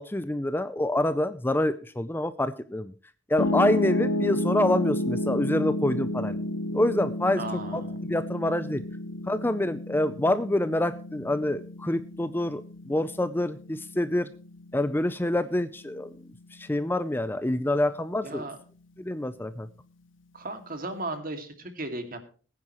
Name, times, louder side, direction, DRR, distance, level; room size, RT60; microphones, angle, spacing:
voice 1, 0.0-2.9 3.3-6.4 6.7-7.4 7.7-8.8 9.2-14.3 14.7-16.2 16.5-18.4 19.0-19.7, left 1 dB, 10° left, 12 dB, 0.5 m, -27 dB
Piano, 3.4-15.6, left 1 dB, 75° left, 1.3 m, -31 dB
voice 2, 7.4-8.0 18.2-18.6 20.3-22.2, right 2 dB, 45° right, 7 dB, 2.3 m, -36 dB
21.5 x 9.6 x 3.1 m, 0.39 s
head